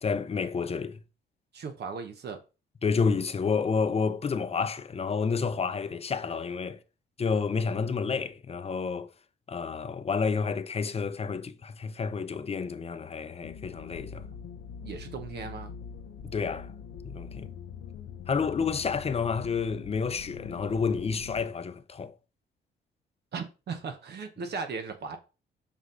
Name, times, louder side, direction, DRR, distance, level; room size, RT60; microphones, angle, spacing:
voice 1, 0.0-1.0 2.8-6.8 7.2-9.1 9.5-14.2 16.2-16.7 17.0-17.5 18.3-22.1, left 5 dB, 30° left, 0.7 m, -30 dB
voice 2, 1.5-2.4 14.8-15.8 23.3-25.2, right 5 dB, 55° right, 1.1 m, -37 dB
sound 1, 13.4-21.4, left 7 dB, 85° left, 0.7 m, -43 dB
5.5 x 4.9 x 3.8 m
cardioid pair, 90°, 20 cm